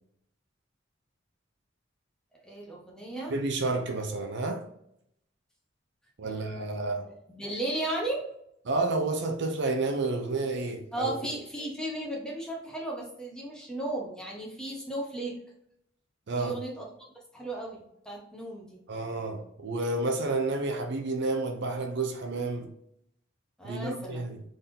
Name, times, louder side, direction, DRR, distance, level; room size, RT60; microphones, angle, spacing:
voice 1, 2.4-3.3 6.2-8.2 10.9-15.4 16.3-16.8 17.3-18.8 23.6-24.3, right 1 dB, 5° left, 1.1 m, -35 dB
voice 2, 3.3-4.7 6.2-7.1 8.6-11.1 16.3-16.6 18.9-22.7 23.6-24.4, right 3 dB, 65° right, 0.6 m, -30 dB
3.8 x 3.7 x 2.7 m
head